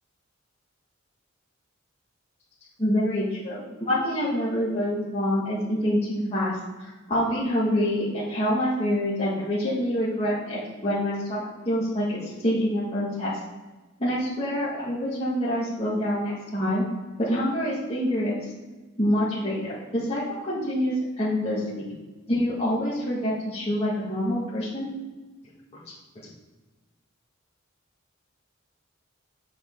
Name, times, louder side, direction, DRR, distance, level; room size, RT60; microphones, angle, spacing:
voice 1, 2.8-13.3 14.0-16.8 17.2-18.4 19.0-21.8 22.3-24.9, equal, 30° left, -10 dB, 2.0 m, -26 dB
8.1 x 6.4 x 3.9 m, 1.2 s
head